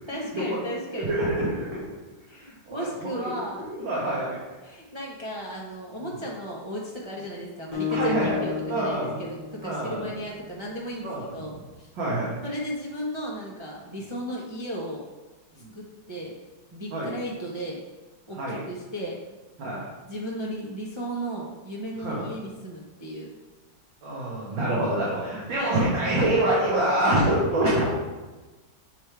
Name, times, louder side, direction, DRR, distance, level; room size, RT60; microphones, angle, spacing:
voice 1, 0.1-1.2 2.3-3.6 3.9-4.0 4.6-11.9 12.4-15.0 15.7-16.4 16.7-17.8 18.3-19.2 20.1-23.3 25.6-25.9, equal, 50° right, -3 dB, 0.3 m, -35 dB
voice 2, 1.1-1.8 2.7-2.9 3.1-3.2 3.8-4.4 7.9-8.4 8.7-9.2 9.6-10.1 11.0-11.3 12.0-12.4 15.6-15.7 16.9-17.1 18.4-18.6 19.6-19.9 22.0-22.3 24.0-27.9, right 1 dB, 85° right, -7 dB, 2.1 m, -25 dB
Acoustic guitar, 7.7-10.5, left 7 dB, 25° right, 1.3 m, -33 dB
7.2 x 3.3 x 4.6 m, 1.2 s
omnidirectional pair, 2.0 m